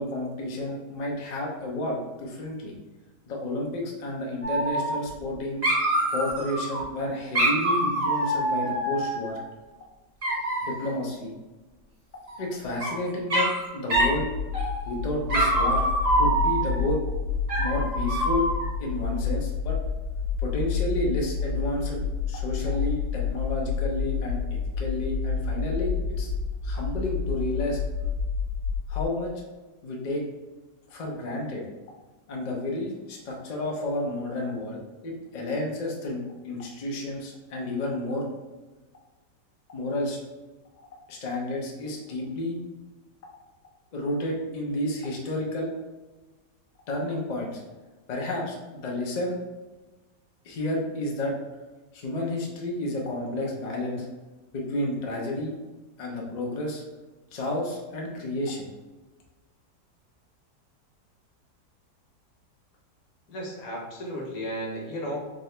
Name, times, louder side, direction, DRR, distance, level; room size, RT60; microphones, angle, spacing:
voice 1, 0.0-2.8 3.3-5.7 6.1-9.4 10.6-11.3 12.1-14.3 14.9-15.8 16.2-17.0 17.6-18.5 18.8-19.8 20.4-26.3 26.6-27.8 28.9-29.3 29.8-30.2 30.9-31.6 32.3-34.8 35.0-38.3 39.7-40.2 40.7-42.6 43.9-45.7 46.9-47.6 48.1-49.3 50.4-51.3 51.9-54.1 54.5-55.5 56.0-56.8 57.3-58.7, left 1 dB, 85° left, -1 dB, 0.3 m, -31 dB
Dog, 4.4-5.3 5.6-6.8 7.3-9.4 10.2-10.9 12.3-12.9 13.3-13.6 13.9-14.2 14.5-14.9 15.3-16.8 17.5-18.7, right 1 dB, 30° right, 0.7 m, -25 dB
sound 1, 13.9-29.0, left 6 dB, 65° right, 1.4 m, -29 dB
voice 2, 63.3-65.2, equal, 60° left, -2 dB, 1.3 m, -34 dB
3.7 x 2.8 x 3.2 m, 1.2 s
omnidirectional pair, 1.8 m